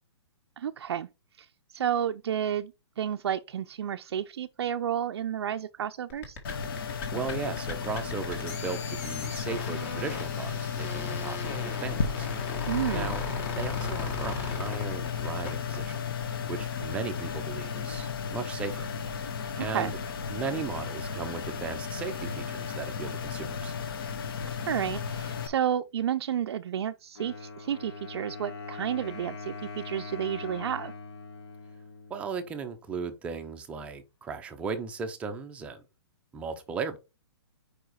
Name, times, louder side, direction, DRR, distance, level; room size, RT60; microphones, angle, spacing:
voice 1, 0.6-1.1 1.4-2.7 3.0-6.4 12.7-13.1 19.6-19.9 24.7-30.9, right 9 dB, 65° right, 0.4 m, -31 dB
sound 1, 6.1-15.8, left 3 dB, 30° left, 1.8 m, -38 dB
sound 2, 6.4-25.5, left 6 dB, 55° left, 1.3 m, -34 dB
voice 2, 7.1-12.3 12.9-13.2 13.5-16.0 16.3-18.9 19.6-20.0 20.3-23.7 32.1-35.8 36.3-37.0, right 5 dB, 10° right, 0.6 m, -36 dB
Wind instrument woodwind instrument, 27.2-32.8, left 4 dB, 70° left, 2.9 m, -42 dB
4.9 x 4.7 x 4.6 m
hypercardioid pair, 160°, 14 cm